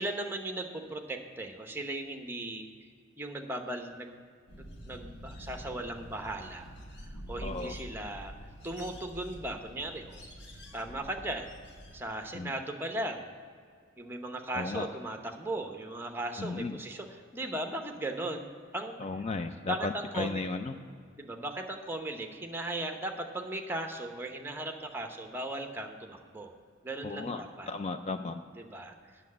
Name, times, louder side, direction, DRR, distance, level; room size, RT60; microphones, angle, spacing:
voice 1, 0.0-2.7 3.2-4.2 4.6-6.6 7.3-8.3 8.6-10.2 10.5-11.5 11.9-13.3 14.0-18.9 19.6-20.4 21.2-26.5 26.8-27.7 28.5-29.2, right 1 dB, 10° right, 4 dB, 0.9 m, -37 dB
sound 1, 4.5-12.0, equal, 60° left, 1.4 m, -46 dB
voice 2, 7.4-7.8 12.3-12.5 14.5-14.9 16.4-16.8 19.0-20.8 27.0-28.4, left 3 dB, 35° left, 8 dB, 0.4 m, -35 dB
9.1 x 6.8 x 8.5 m, 2.1 s
head